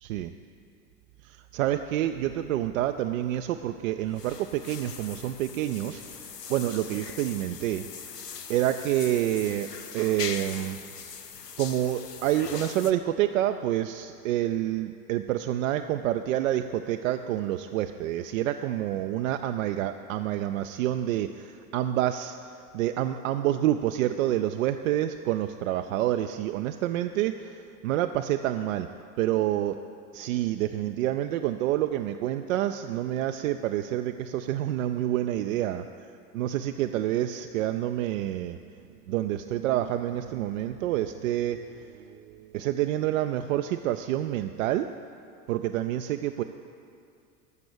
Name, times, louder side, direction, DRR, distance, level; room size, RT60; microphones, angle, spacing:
voice 1, 1.5-7.9 8.5-9.7 9.9-10.8 11.6-22.3 22.7-27.6 27.8-28.9 29.2-29.7 30.1-35.8 36.3-38.6 39.1-41.6 41.9-44.9 45.5-46.4, right 12 dB, 60° right, 7 dB, 0.5 m, -28 dB
sound 1, 3.3-12.9, left 6 dB, 90° left, 0.6 m, -41 dB
13.5 x 6.0 x 6.7 m, 2.5 s
figure-of-eight pair, 75°, 47 cm